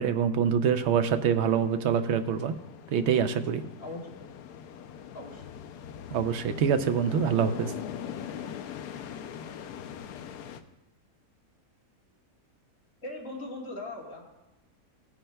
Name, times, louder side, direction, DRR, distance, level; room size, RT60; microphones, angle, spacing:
voice 1, 0.0-2.5 2.9-3.6 6.1-7.7, right 7 dB, 70° right, 8 dB, 0.6 m, -25 dB
sound 1, 0.7-10.6, left 8 dB, 85° left, 1.1 m, -42 dB
voice 2, 3.8-4.3 4.7-6.0 13.0-14.2, left 2 dB, 50° left, -4 dB, 2.6 m, -41 dB
15.5 x 9.9 x 2.2 m, 0.94 s
omnidirectional pair, 1.7 m